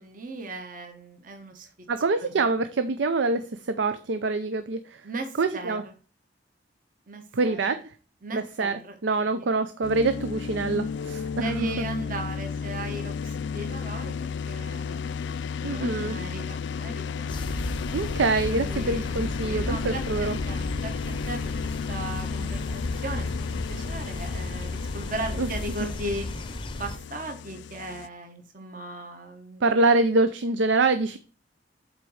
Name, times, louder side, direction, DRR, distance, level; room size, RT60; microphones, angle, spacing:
voice 1, 0.0-1.7 2.3-2.4 5.0-5.8 7.1-7.8 8.2-8.9 9.3-9.5 11.3-15.0 15.6-17.6 18.5-20.0 20.5-20.9 21.3-26.5 26.8-29.6, right 2 dB, 45° right, 4 dB, 1.1 m, -37 dB
voice 2, 1.9-5.0 5.4-5.8 7.3-7.9 8.3-11.5 15.6-16.1 17.9-20.4 25.4-25.5 25.8-25.9 29.6-31.2, right 3 dB, 80° right, 10 dB, 0.5 m, -25 dB
sound 1, 9.8-28.1, left 6 dB, 70° left, 0.3 m, -33 dB
sound 2, 17.3-27.0, left 1 dB, 25° left, 0.6 m, -34 dB
8.2 x 4.0 x 4.8 m, 0.38 s
head